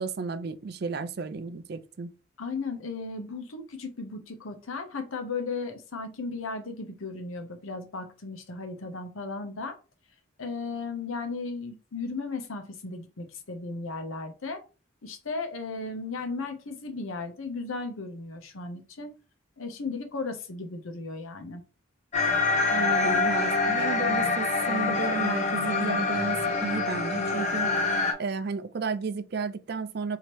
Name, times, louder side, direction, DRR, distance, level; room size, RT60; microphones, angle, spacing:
voice 1, 0.0-2.1 22.7-27.7 28.2-30.2, right 4 dB, 50° right, 0.4 m, -33 dB
voice 2, 2.4-9.8 10.4-14.6 15.0-19.1 19.6-21.6, left 3 dB, 90° left, 0.8 m, -35 dB
sound 1, 22.1-28.1, left 3 dB, 35° left, 0.7 m, -26 dB
3.0 x 2.8 x 4.5 m
head